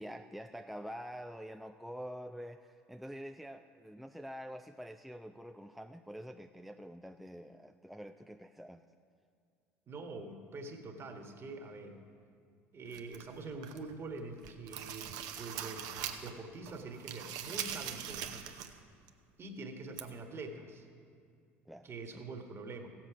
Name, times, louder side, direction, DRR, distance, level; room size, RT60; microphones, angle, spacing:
voice 1, 0.0-8.8 21.7-22.3, equal, ahead, 6 dB, 0.4 m, -46 dB
voice 2, 9.9-12.0 12.7-15.9 16.2-18.5 19.4-20.9 21.8-22.9, right 3 dB, 35° right, 4 dB, 1.6 m, -45 dB
sound 1, 12.9-13.9 14.3-16.4 16.7-18.8 19.1-19.2 20.0-20.1, right 9 dB, 60° right, 0.8 m, -42 dB
16.0 x 7.6 x 4.9 m, 2.2 s
hypercardioid pair, 70°, 7 cm